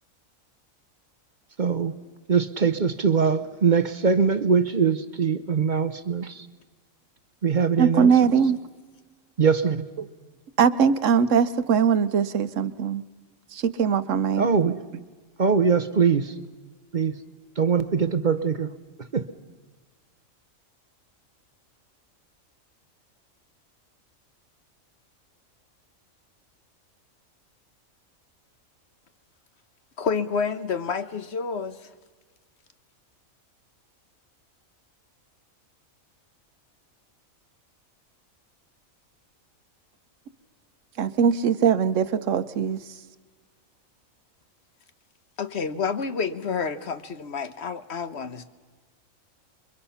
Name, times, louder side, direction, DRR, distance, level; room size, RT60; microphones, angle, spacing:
voice 1, 1.6-1.9 2.3-6.5 7.4-8.1 9.4-9.8 14.4-14.8 15.4-16.3 16.9-17.2 17.6-18.7 19.1-19.3, right 6 dB, 40° right, 0.9 m, -22 dB
voice 2, 7.8-8.6 10.6-13.0 13.5-14.5 41.0-42.8, right 7 dB, 70° right, 1.2 m, -21 dB
voice 3, 30.0-31.9 45.4-48.4, left 5 dB, 55° left, 1.2 m, -29 dB
28.0 x 23.0 x 5.7 m
omnidirectional pair, 1.4 m